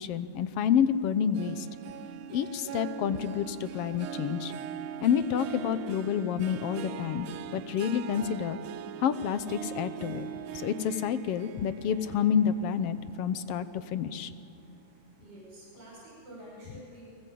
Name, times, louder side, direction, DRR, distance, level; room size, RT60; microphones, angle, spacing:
voice 1, 0.0-1.7 2.3-4.5 5.0-7.3 7.5-8.6 9.0-10.3 10.5-13.7 13.9-14.3, left 8 dB, 65° left, 13 dB, 1.6 m, -28 dB
Harp, 1.3-14.1 14.5-14.9 15.4-15.5, right 9 dB, 90° right, 1.1 m, -41 dB
voice 2, 15.2-17.0, right 1 dB, 55° right, -5 dB, 6.9 m, -48 dB
29.5 x 19.5 x 8.5 m, 2.3 s
omnidirectional pair, 3.3 m